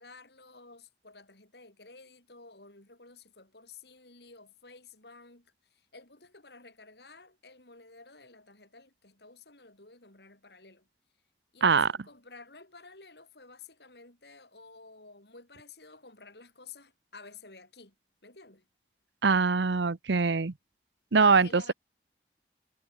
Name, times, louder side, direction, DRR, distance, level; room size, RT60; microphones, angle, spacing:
voice 1, 0.0-10.9 11.5-17.9 18.2-18.7 21.1-21.7, left 4 dB, 65° left, 5.5 m, -52 dB
voice 2, 11.6-11.9 19.2-20.5 21.1-21.7, right 5 dB, 80° right, 0.8 m, -23 dB
head